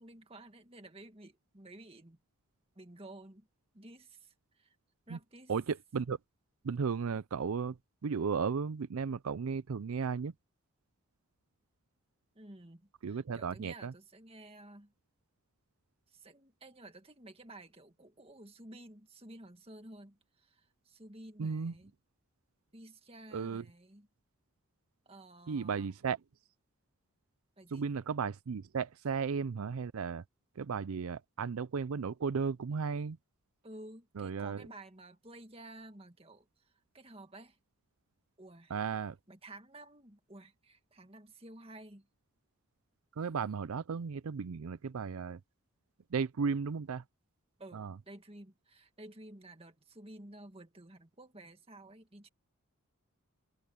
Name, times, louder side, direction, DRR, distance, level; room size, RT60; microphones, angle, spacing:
voice 1, 0.0-2.2 2.8-3.5 3.7-4.8 5.1-5.5 12.3-14.9 16.1-21.9 22.7-24.1 25.1-25.9 27.6-27.8 33.6-37.6 38.4-38.7 39.3-42.1 47.6-52.3, right 1 dB, 25° right, 2.0 m, -53 dB
voice 2, 5.5-6.2 6.6-10.3 13.0-13.9 21.4-21.7 23.3-23.6 25.5-26.2 27.7-30.2 30.6-33.2 34.2-34.6 38.7-39.2 43.2-45.4 46.1-47.0 47.7-48.0, right 5 dB, 75° right, 0.5 m, -35 dB
head